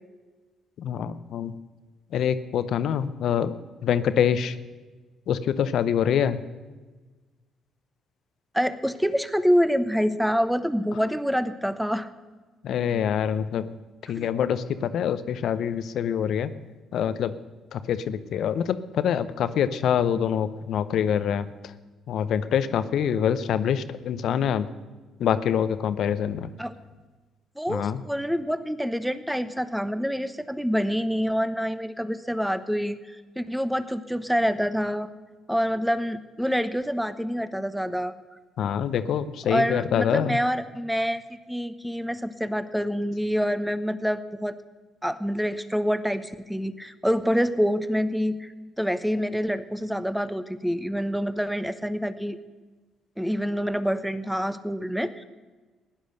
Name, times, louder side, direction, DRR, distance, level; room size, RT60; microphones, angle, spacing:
voice 1, 0.8-1.5 2.1-3.5 3.8-4.6 5.3-6.4 12.6-13.7 14.1-16.5 16.9-17.3 17.7-21.5 22.1-24.7 25.2-26.5 27.7-28.0 38.6-40.4, left 8 dB, 65° left, 13 dB, 0.7 m, -25 dB
voice 2, 8.5-12.1 14.1-14.3 26.6-26.7 27.6-35.1 35.5-38.1 39.5-41.2 41.5-44.6 45.0-48.5 48.8-52.4 53.2-55.2, equal, ahead, 13 dB, 1.0 m, -26 dB
16.0 x 10.0 x 6.7 m, 1.3 s
hypercardioid pair, 55°, 0 cm